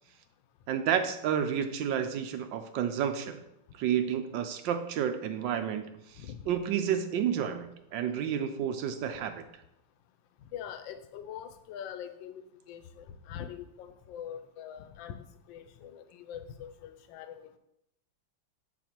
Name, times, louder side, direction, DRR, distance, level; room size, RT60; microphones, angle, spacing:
voice 1, 0.7-3.4 3.8-9.4, right 8 dB, 75° right, 8 dB, 1.3 m, -30 dB
voice 2, 10.5-15.2 15.5-17.6, left 9 dB, 80° left, 10 dB, 1.3 m, -43 dB
7.7 x 4.2 x 4.4 m, 0.79 s
omnidirectional pair, 2.1 m